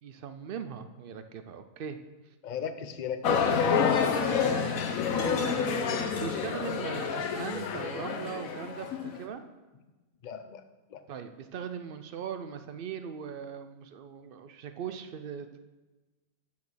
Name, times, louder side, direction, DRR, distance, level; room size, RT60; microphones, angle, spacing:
voice 1, 0.0-2.0 4.2-4.8 5.1-9.4 11.1-15.6, right 7 dB, 70° right, 9 dB, 0.5 m, -39 dB
voice 2, 2.4-3.6 10.2-10.6 10.9-11.0, left 7 dB, 50° left, 8 dB, 0.5 m, -36 dB
sound 1, 3.2-9.2, left 6 dB, 70° left, 1.2 m, -28 dB
9.1 x 5.7 x 6.2 m, 1.2 s
omnidirectional pair, 1.6 m